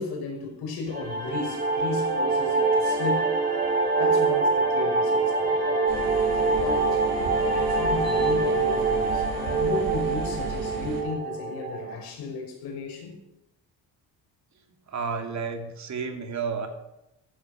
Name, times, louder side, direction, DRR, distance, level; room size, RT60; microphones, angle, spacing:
voice 1, 0.0-3.3 4.0-5.9 6.5-7.0 7.5-13.1, left 4 dB, 80° left, 5.2 m, -35 dB
sound 1, 0.9-11.9, right 3 dB, 20° right, 6.1 m, -25 dB
sound 2, 5.9-11.0, right 4 dB, 60° right, 6.6 m, -35 dB
voice 2, 14.9-16.7, right 5 dB, 45° right, 3.0 m, -31 dB
14.5 x 14.0 x 6.5 m
cardioid pair, 115°, 39 cm